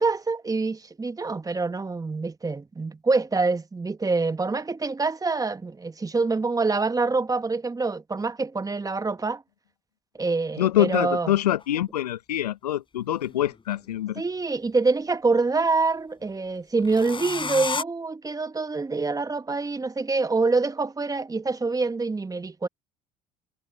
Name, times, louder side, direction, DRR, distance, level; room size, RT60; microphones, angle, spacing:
voice 1, 0.0-9.4 10.2-11.4 14.1-22.7, right 3 dB, 20° right, 1.6 m, -26 dB
voice 2, 10.6-14.2, left 12 dB, 85° left, 0.8 m, -25 dB
sound 1, 11.6-11.7 13.0-14.0 16.8-17.8, left 4 dB, 25° left, 4.6 m, -31 dB
hypercardioid pair, 65°, 20 cm